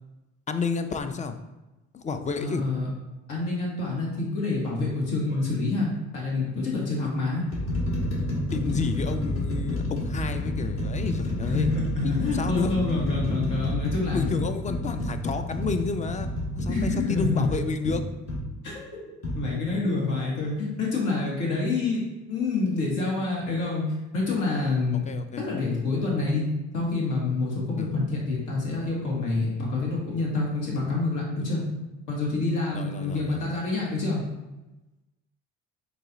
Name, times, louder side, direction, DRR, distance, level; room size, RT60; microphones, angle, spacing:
voice 1, 0.5-1.4 1.9-2.6 8.5-11.8 12.0-12.7 14.1-16.3 16.5-18.0 25.1-25.5 27.8-27.9 32.7-33.4, left 4 dB, 25° left, 8 dB, 0.4 m, -30 dB
voice 2, 2.4-2.9 3.3-7.4 11.5-14.2 16.7-17.5 18.6-19.0 19.4-22.0 22.3-23.8 24.1-25.1 25.4-26.4 26.7-31.6 32.1-34.2, left 3 dB, 75° left, -3 dB, 1.4 m, -27 dB
sound 1, 5.2-5.5 6.4-6.5 7.2-18.5 19.2-19.4, left 1 dB, 45° left, 1.3 m, -29 dB
4.0 x 2.4 x 3.9 m, 1.0 s
supercardioid pair, 70°, 31 cm